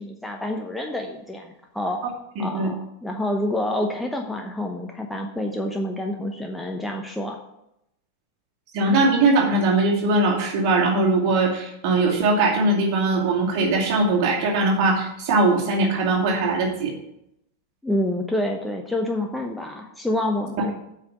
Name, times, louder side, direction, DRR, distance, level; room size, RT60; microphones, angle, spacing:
voice 1, 0.0-2.0 2.4-7.4 17.8-20.7, left 1 dB, 5° left, 2 dB, 0.9 m, -28 dB
voice 2, 2.4-2.7 8.7-16.9, right 2 dB, 45° right, -1 dB, 2.4 m, -20 dB
8.2 x 5.9 x 6.5 m, 0.81 s
figure-of-eight pair, 90°, 0 cm